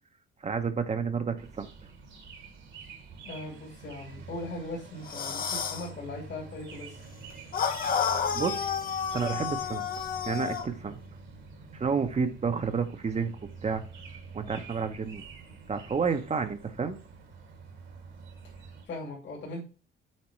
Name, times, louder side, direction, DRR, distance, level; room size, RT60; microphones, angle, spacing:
voice 1, 0.4-1.7 8.3-8.7 9.1-9.9 10.3-11.0 11.7-13.3 13.6-13.8 14.3-15.2 15.7-17.0, right 5 dB, 35° right, 7 dB, 0.8 m, -30 dB
sound 1, 1.4-18.9, right 4 dB, 70° right, 2.0 m, -47 dB
voice 2, 3.2-7.0 18.9-19.7, left 2 dB, 65° left, -2 dB, 2.7 m, -39 dB
sound 2, 5.0-5.9 7.5-10.7, left 7 dB, 45° left, 0.7 m, -30 dB
7.3 x 4.3 x 3.1 m, 0.35 s
cardioid pair, 90°, 20 cm